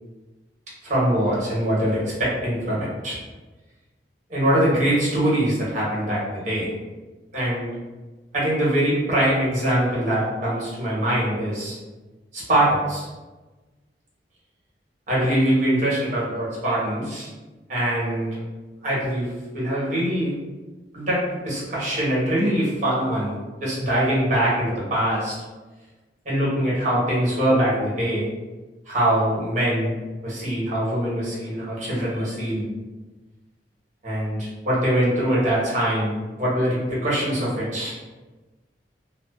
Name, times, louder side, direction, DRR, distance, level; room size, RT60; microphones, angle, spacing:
voice 1, 0.8-3.2 4.3-6.7 7.3-7.7 8.3-11.8 12.3-13.1 15.1-17.3 17.7-18.4 18.8-20.4 20.9-23.3 23.6-25.3 26.2-28.3 28.8-29.9 30.2-32.7 34.0-36.1 36.4-37.9, right 1 dB, 45° right, -7 dB, 1.1 m, -23 dB
2.5 x 2.3 x 2.3 m, 1.2 s
head